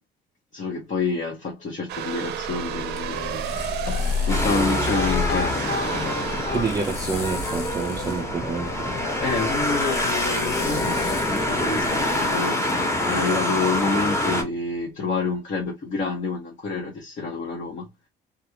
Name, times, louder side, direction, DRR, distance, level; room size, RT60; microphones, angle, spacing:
voice 1, 0.5-3.7 4.3-6.5 9.2-12.7 13.0-17.9, left 4 dB, 45° left, 0.8 m, -28 dB
sound 1, 1.9-10.7, right 1 dB, 80° right, 0.6 m, -32 dB
sound 2, 2.1-12.5, left 3 dB, 85° left, 0.7 m, -37 dB
sound 3, 4.3-14.4, left 1 dB, 15° left, 0.9 m, -25 dB
voice 2, 6.5-9.0, right 4 dB, 20° right, 0.4 m, -28 dB
2.4 x 2.2 x 2.7 m
cardioid pair, 110°, 17 cm